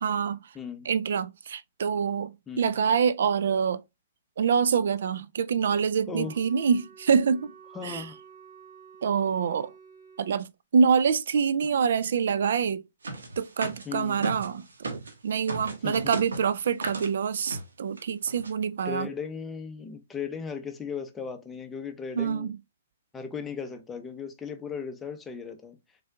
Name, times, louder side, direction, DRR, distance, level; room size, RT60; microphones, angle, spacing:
voice 1, 0.0-0.5 0.9-3.8 4.4-7.5 7.8-8.1 9.0-9.7 10.2-12.8 13.4-19.1 22.2-22.6, right 6 dB, 70° right, 0.3 m, -26 dB
voice 2, 0.5-0.9 2.5-2.7 6.1-6.3 7.7-8.2 13.9-14.3 15.8-16.1 18.8-22.5 23.1-25.8, left 6 dB, 10° left, 0.8 m, -36 dB
Wind instrument woodwind instrument, 6.0-10.4, right 6 dB, 25° right, 2.2 m, -51 dB
sound 1, 13.0-15.1 15.5-17.1 17.5-17.7 18.0-18.1 18.3-18.5, right 2 dB, 85° right, 1.3 m, -35 dB
4.2 x 3.7 x 2.3 m
hypercardioid pair, 135°, 0 cm